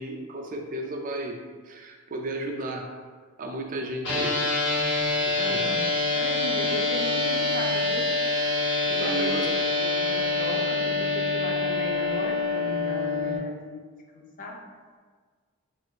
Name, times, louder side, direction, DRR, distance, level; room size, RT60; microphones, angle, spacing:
voice 1, 0.0-1.4 1.6-2.9 3.4-4.4 5.3-5.8 9.0-9.6, right 2 dB, 40° right, 2 dB, 0.4 m, -33 dB
sound 1, 4.0-13.4, left 2 dB, 55° left, 0.9 m, -26 dB
voice 2, 5.3-5.8 6.1-8.1 8.9-9.5 9.8-13.8 14.1-14.6, left 1 dB, 40° left, 1 dB, 0.5 m, -37 dB
6.2 x 2.5 x 2.4 m, 1.5 s
head